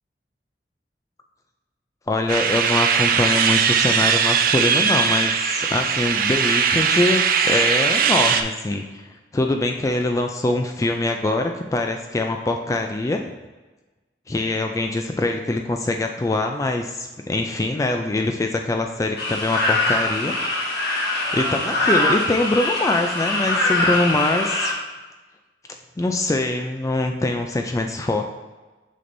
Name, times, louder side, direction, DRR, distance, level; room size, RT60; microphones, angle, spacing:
voice 1, 2.1-8.8 9.3-13.2 14.3-20.3 21.3-24.7 26.0-28.2, left 2 dB, 20° left, 4 dB, 0.3 m, -23 dB
sound 1, 2.3-8.4, right 7 dB, 55° right, 0.4 m, -20 dB
sound 2, 19.2-24.7, left 2 dB, 60° left, 1.4 m, -23 dB
6.2 x 5.9 x 2.6 m, 1.2 s
head